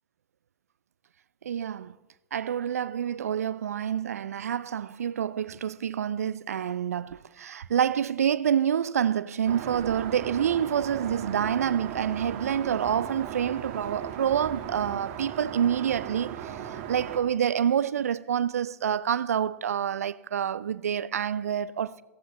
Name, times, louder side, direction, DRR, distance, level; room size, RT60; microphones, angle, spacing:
voice 1, 1.4-2.0 2.3-22.0, right 9 dB, 75° right, 0.4 m, -27 dB
Aircraft, 9.5-17.2, right 9 dB, 50° right, 1.4 m, -37 dB
17.5 x 15.5 x 3.0 m
figure-of-eight pair, 95°, 8 cm